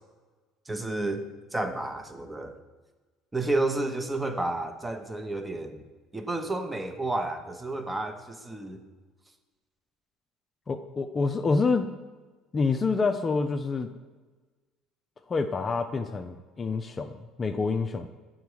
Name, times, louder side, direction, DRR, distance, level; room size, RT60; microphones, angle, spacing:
voice 1, 0.7-1.2 1.5-2.5 3.3-5.8 6.1-8.8, right 2 dB, 15° right, 7 dB, 0.7 m, -31 dB
voice 2, 10.7-11.9 12.5-13.9 15.3-18.1, left 4 dB, 30° left, 8 dB, 0.4 m, -27 dB
7.9 x 3.8 x 4.7 m, 1.3 s
hypercardioid pair, 65°, 0 cm